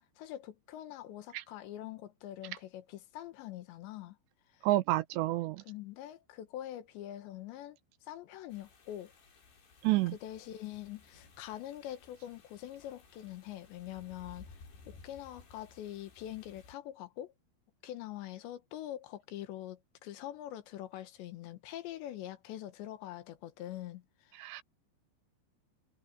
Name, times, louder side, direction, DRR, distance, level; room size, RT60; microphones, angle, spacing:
voice 1, 0.0-4.2 4.5-4.7 5.6-9.1 10.2-17.3 17.8-24.4, left 13 dB, 80° left, 3.5 m, -44 dB
voice 2, 4.6-5.6 9.8-10.1 24.4-24.6, right 17 dB, 80° right, 2.8 m, -29 dB
sound 1, 8.5-16.8, left 4 dB, 60° left, 7.8 m, -58 dB
omnidirectional pair, 5.3 m